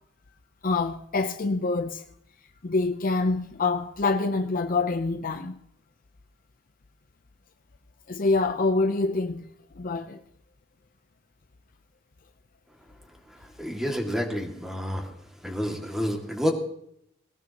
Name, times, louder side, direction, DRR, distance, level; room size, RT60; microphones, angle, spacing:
voice 1, 0.6-2.0 2.6-5.6 8.1-9.4 9.8-10.2, left 3 dB, 45° left, 0.6 m, -26 dB
voice 2, 13.6-15.0 15.4-16.5, equal, ahead, 2.1 m, -29 dB
19.5 x 18.0 x 2.9 m
head